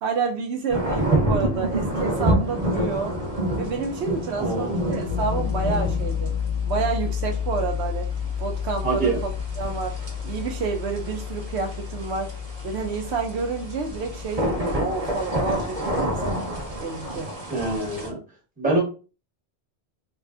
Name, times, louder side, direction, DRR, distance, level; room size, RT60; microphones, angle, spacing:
voice 1, 0.0-3.1 3.6-6.3 6.7-8.1 8.4-10.0 10.2-12.4 12.6-16.4 16.8-17.3, right 5 dB, 75° right, 4 dB, 0.8 m, -29 dB
sound 1, 0.7-18.1, right 1 dB, 35° right, 1.0 m, -29 dB
voice 2, 4.4-4.8 8.8-9.2 17.5-18.2 18.6-18.8, right 3 dB, 10° right, -2 dB, 1.0 m, -24 dB
Piano, 5.1-15.9, left 8 dB, 50° left, 0.4 m, -31 dB
3.5 x 2.3 x 2.4 m, 0.33 s
omnidirectional pair, 1.1 m